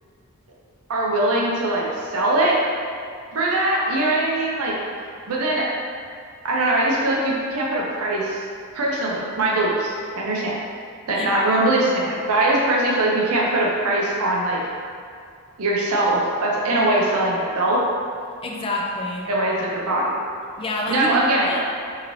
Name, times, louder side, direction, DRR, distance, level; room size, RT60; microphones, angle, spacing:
voice 1, 0.9-2.6 3.3-4.7 5.3-5.7 6.4-8.4 8.7-10.6 11.1-14.6 15.6-17.8 19.3-20.2 20.9-21.5, right 1 dB, 85° right, -3 dB, 0.6 m, -21 dB
voice 2, 11.1-11.4 18.4-19.3 19.6-19.7 20.6-21.6, left 1 dB, 25° left, -2 dB, 0.3 m, -28 dB
2.8 x 2.6 x 3.0 m, 2.3 s
head